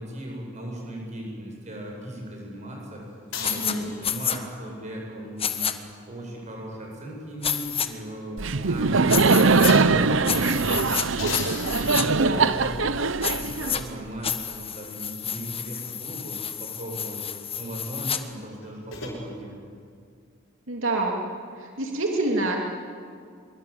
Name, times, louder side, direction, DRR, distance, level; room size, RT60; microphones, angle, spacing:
voice 1, 0.0-5.7 6.1-9.3 9.5-11.2 11.5-17.2 17.6-19.5, right 1 dB, 35° right, -1 dB, 7.9 m, -37 dB
sound 1, 3.3-4.3 6.0-7.6 8.0-8.1 9.6-10.1 11.2-12.7 13.6-13.7 18.3-19.2, left 4 dB, 80° left, 6.2 m, -38 dB
sound 2, 3.4-3.7 4.0-4.4 5.4-5.7 7.4-7.9 9.1-9.7 10.2-11.1 11.3-12.0 13.2-13.8 14.2-18.2, left 8 dB, 30° left, 1.3 m, -30 dB
voice 2, 3.4-3.9 12.1-12.6 20.7-21.2 21.6-22.7, right 2 dB, 90° right, 1 dB, 2.7 m, -27 dB
Laughter, 8.4-14.2, right 4 dB, 70° right, 0.8 m, -22 dB
24.0 x 23.0 x 8.8 m, 2.2 s
head